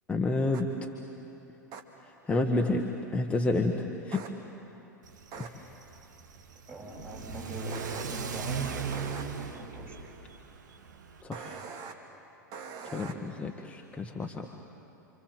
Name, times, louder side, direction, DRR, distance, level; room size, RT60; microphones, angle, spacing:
voice 1, 0.1-0.7 2.2-2.9 3.1-4.2 5.4-5.6 11.2-11.6 12.8-14.5, left 2 dB, 10° left, 2 dB, 1.5 m, -29 dB
sound 1, 0.5-0.6 1.7-1.8 4.1-4.3 5.3-5.5 7.7-8.0 8.9-9.2 11.3-11.9 12.5-13.1, right 6 dB, 40° right, 2.3 m, -42 dB
Car / Accelerating revving vroom, 5.0-11.2, right 6 dB, 70° right, 1.6 m, -39 dB
voice 2, 6.7-10.1 13.0-13.3, right 3 dB, 25° right, -2 dB, 7.5 m, -41 dB
29.5 x 25.5 x 7.7 m, 2.9 s
figure-of-eight pair, 90°, 10 cm